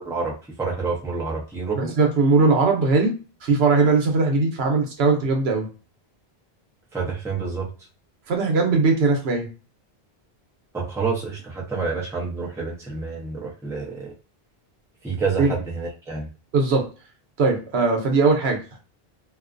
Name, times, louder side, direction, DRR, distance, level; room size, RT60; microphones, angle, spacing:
voice 1, 0.0-1.9 6.9-7.7 10.7-14.1 15.0-16.3, right 4 dB, 5° right, -3 dB, 0.6 m, -28 dB
voice 2, 1.8-3.1 3.4-5.7 8.3-9.5 15.4-15.5 16.5-16.8 17.4-18.8, right 4 dB, 80° right, 2 dB, 1.0 m, -20 dB
2.5 x 2.2 x 2.5 m, 0.34 s
omnidirectional pair, 1.1 m